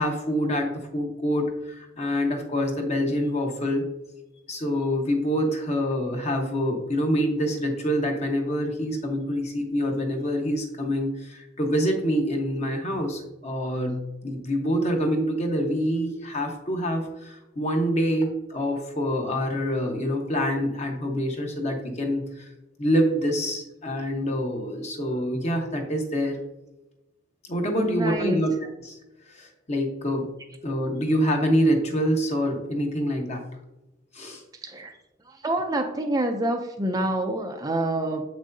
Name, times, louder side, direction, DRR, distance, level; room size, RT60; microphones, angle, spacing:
voice 1, 0.0-3.8 4.5-22.5 22.8-26.4 27.5-28.5 28.8-29.0 29.3-30.3 30.6-33.4 34.1-34.4, equal, 35° left, 2 dB, 1.1 m, -26 dB
voice 2, 27.8-28.4 34.6-34.9 35.3-38.2, right 1 dB, 20° right, 4 dB, 0.5 m, -27 dB
7.6 x 6.3 x 2.7 m, 0.96 s
head